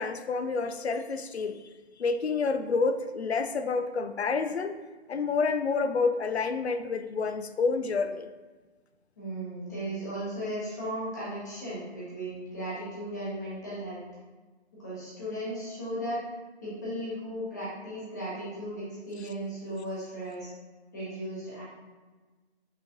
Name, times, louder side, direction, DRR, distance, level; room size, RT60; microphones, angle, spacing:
voice 1, 0.0-1.6 2.0-4.8 5.1-8.3, left 4 dB, 70° left, 9 dB, 0.5 m, -28 dB
voice 2, 9.2-14.0 14.8-16.2 16.6-20.5 20.9-21.6, right 1 dB, 15° left, -9 dB, 0.9 m, -36 dB
5.6 x 3.0 x 2.5 m, 1.3 s
figure-of-eight pair, 150°, 34 cm